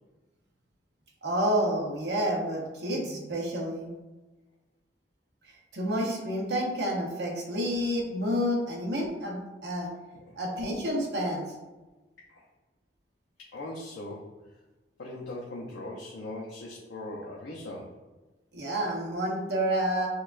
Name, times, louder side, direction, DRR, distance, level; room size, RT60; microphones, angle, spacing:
voice 1, 1.2-3.9 5.7-9.9 10.4-11.5 18.5-20.1, equal, 65° right, -1 dB, 0.9 m, -29 dB
voice 2, 13.4-14.4 15.0-18.0, left 1 dB, 80° left, -5 dB, 0.6 m, -40 dB
6.3 x 2.3 x 2.4 m, 1.2 s
head